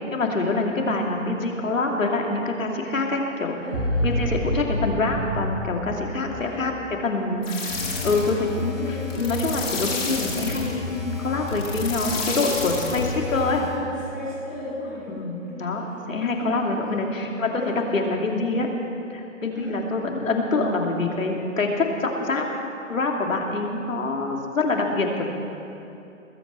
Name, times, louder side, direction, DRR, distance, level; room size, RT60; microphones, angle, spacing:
voice 1, 0.0-3.6 4.0-13.6 15.2-18.7 19.1-22.5 22.9-25.3, left 3 dB, 75° left, 1 dB, 2.7 m, -25 dB
voice 2, 3.6-4.3 6.3-6.7 8.7-9.6 13.7-15.6 16.2-16.5 16.8-18.0 19.5-19.8, left 1 dB, 5° left, -13 dB, 0.8 m, -37 dB
sound 1, 3.7-6.8, equal, 15° right, 1.3 m, -28 dB
sound 2, 7.4-13.8, left 3 dB, 45° left, 3.8 m, -30 dB
20.5 x 8.4 x 7.5 m, 2.8 s
hypercardioid pair, 175°, 40 cm